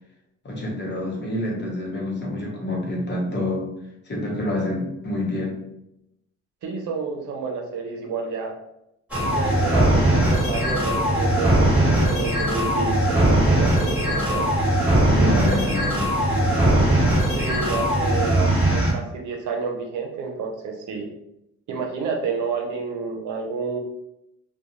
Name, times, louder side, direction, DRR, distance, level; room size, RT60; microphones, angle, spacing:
voice 1, 0.4-3.7 4.0-5.6 15.1-16.7, left 1 dB, 35° left, -2 dB, 0.9 m, -28 dB
voice 2, 6.6-8.5 9.2-14.5 15.2-15.3 17.3-18.4 18.7-21.1 21.7-23.8, right 5 dB, 75° right, 2 dB, 0.6 m, -30 dB
sound 1, 9.1-18.9, right 1 dB, 5° right, 1.2 m, -20 dB
2.4 x 2.2 x 2.9 m, 0.82 s
cardioid pair, 90°, 30 cm